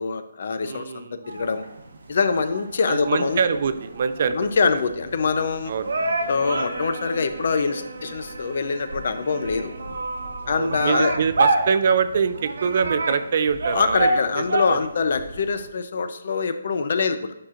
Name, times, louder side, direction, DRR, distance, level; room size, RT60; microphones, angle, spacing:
voice 1, 0.0-1.7 2.1-3.4 4.3-5.7 6.3-9.7 10.5-11.2 13.7-17.3, left 5 dB, 50° left, 10 dB, 0.6 m, -24 dB
voice 2, 0.6-1.2 2.9-4.4 5.7-5.9 10.4-14.9, right 6 dB, 40° right, 12 dB, 0.4 m, -24 dB
sound 1, 1.2-15.7, right 2 dB, 80° right, 1.0 m, -29 dB
9.7 x 5.8 x 2.5 m, 0.85 s
hypercardioid pair, 170°, 0 cm